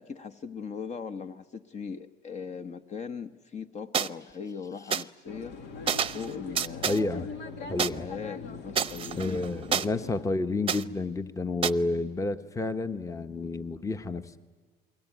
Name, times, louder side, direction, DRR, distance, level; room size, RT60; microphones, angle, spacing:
voice 1, 0.0-5.6 6.1-7.2 7.6-9.9 11.5-11.6, left 6 dB, 45° left, 8 dB, 1.1 m, -40 dB
sound 1, 3.9-4.1 4.9-5.0 5.9-6.3 6.6-7.0 7.8-7.9 8.8-9.9 10.7-10.8 11.6-11.7, right 7 dB, 35° right, 0.7 m, -28 dB
sound 2, 5.3-10.2, left 4 dB, 85° left, 2.1 m, -41 dB
voice 2, 6.9-7.3 7.7-8.1 9.1-14.4, left 2 dB, 20° left, 10 dB, 1.1 m, -30 dB
28.5 x 22.0 x 9.3 m, 1.5 s
cardioid pair, 110°, 17 cm